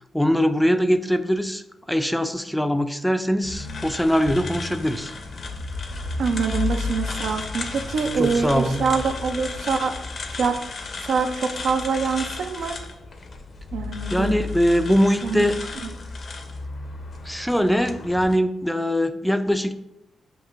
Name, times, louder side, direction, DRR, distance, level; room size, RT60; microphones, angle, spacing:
voice 1, 0.1-5.1 8.2-8.8 14.1-15.6 17.2-19.7, equal, 5° left, 9 dB, 0.3 m, -22 dB
sound 1, 3.4-18.4, left 3 dB, 55° left, 0.5 m, -33 dB
voice 2, 6.2-9.9 10.4-10.5 11.0-12.8 13.7-14.3 15.2-15.5, right 5 dB, 75° right, 6 dB, 0.4 m, -25 dB
6.1 x 2.6 x 2.4 m, 0.89 s
supercardioid pair, 60°, 0 cm